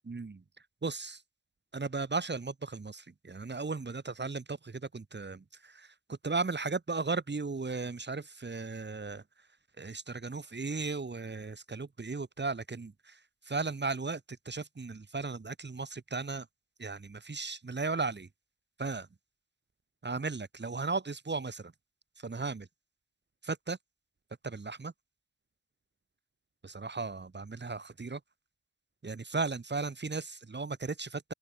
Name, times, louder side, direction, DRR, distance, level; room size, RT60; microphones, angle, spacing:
voice 1, 0.0-0.4 0.8-1.2 1.7-9.2 9.8-13.2 13.5-16.5 16.8-18.3 18.8-19.1 20.0-21.7 22.2-22.6 23.4-23.8 24.4-24.9 26.6-28.2 29.0-31.3, right 4 dB, 25° right, 1.1 m, -36 dB
open air
cardioid pair, 65°, 43 cm